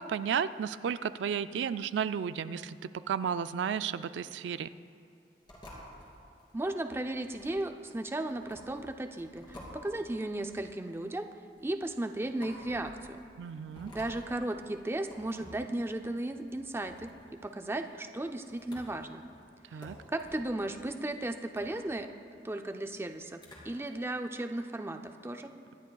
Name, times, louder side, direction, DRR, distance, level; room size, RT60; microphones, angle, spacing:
voice 1, 0.0-4.7 13.4-13.9 19.7-20.0, right 7 dB, 80° right, 13 dB, 0.3 m, -33 dB
sound 1, 5.4-23.9, left 1 dB, 30° left, 2.8 m, -53 dB
voice 2, 6.5-11.3 11.6-13.2 13.9-17.1 17.4-19.2 19.7-22.1 22.4-23.4 23.6-25.5, right 1 dB, 15° right, 6 dB, 0.4 m, -35 dB
24.5 x 10.5 x 2.3 m, 2.8 s
head